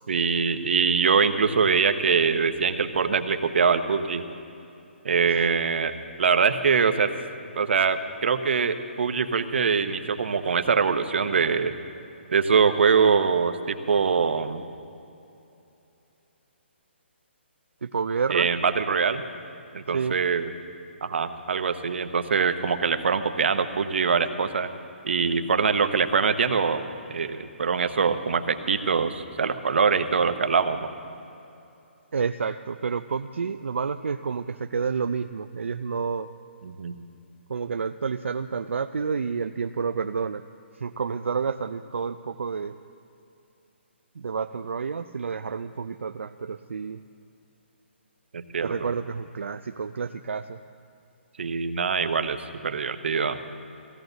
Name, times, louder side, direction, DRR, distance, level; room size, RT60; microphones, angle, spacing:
voice 1, 0.1-4.2 5.0-5.9 6.2-7.1 7.5-11.7 12.3-14.6 18.3-19.2 19.7-20.5 21.0-24.7 25.0-30.9 36.6-36.9 48.3-48.9 51.4-52.4 52.6-53.4, right 5 dB, 65° right, 9 dB, 1.0 m, -23 dB
voice 2, 17.8-18.5 19.9-20.2 32.1-36.3 37.5-40.4 40.7-42.8 44.2-47.0 48.6-50.6, right 5 dB, 85° right, 9 dB, 0.4 m, -29 dB
18.5 x 16.0 x 4.0 m, 2.8 s
hypercardioid pair, 165°, 7 cm